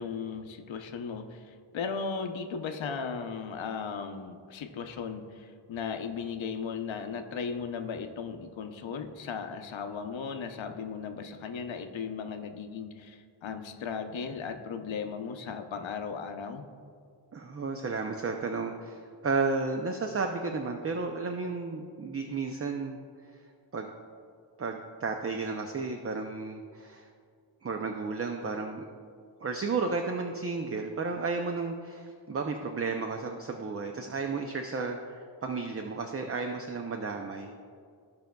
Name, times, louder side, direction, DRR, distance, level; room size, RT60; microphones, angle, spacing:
voice 1, 0.0-16.7, left 6 dB, 75° left, 6 dB, 0.8 m, -36 dB
voice 2, 17.3-23.0 23.3-23.9 24.6-27.1 27.6-28.8 29.4-37.5, right 4 dB, 30° right, 4 dB, 0.5 m, -33 dB
15.0 x 5.2 x 2.3 m, 2.1 s
cardioid pair, 75°, 47 cm